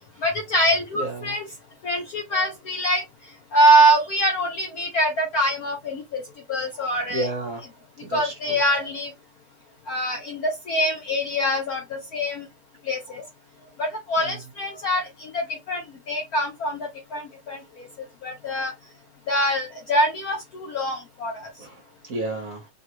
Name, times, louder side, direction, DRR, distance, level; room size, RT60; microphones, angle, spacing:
voice 1, 0.2-1.4 1.8-3.0 3.5-6.2 6.5-7.3 8.1-9.1 9.9-12.5 12.9-13.2 13.8-15.8 16.1-17.6 18.2-18.7 19.3-21.5, right 1 dB, 65° left, 0.9 m, -24 dB
voice 2, 0.9-1.3 7.1-7.6 8.0-8.6 14.2-14.4 21.6-22.7, right 2 dB, 50° right, 1.2 m, -32 dB
3.7 x 2.3 x 2.8 m
omnidirectional pair, 2.3 m